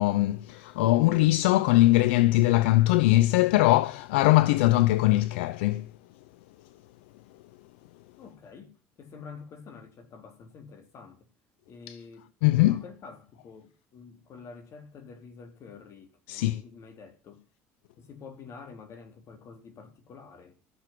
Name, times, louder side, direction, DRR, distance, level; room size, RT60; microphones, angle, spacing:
voice 1, 0.0-5.9 11.9-12.0 12.4-12.8 16.3-16.6, left 17 dB, 85° left, 0.6 m, -21 dB
voice 2, 8.2-11.3 11.7-17.4 18.0-20.6, left 5 dB, 55° left, 3.8 m, -48 dB
14.0 x 6.9 x 7.4 m
hypercardioid pair, 75°, 6 cm